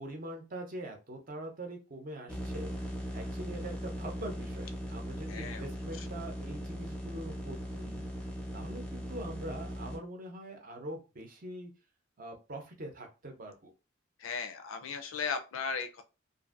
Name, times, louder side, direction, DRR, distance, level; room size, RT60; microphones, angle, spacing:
voice 1, 0.0-2.7 3.1-8.0 8.5-11.7 12.2-13.7, right 1 dB, 45° right, 3 dB, 0.6 m, -43 dB
sound 1, 2.3-10.0, equal, 5° left, 0.6 m, -39 dB
voice 2, 5.3-5.7 6.0-6.1 14.2-16.0, left 5 dB, 90° left, 7 dB, 0.5 m, -36 dB
2.6 x 2.5 x 2.4 m, 0.31 s
head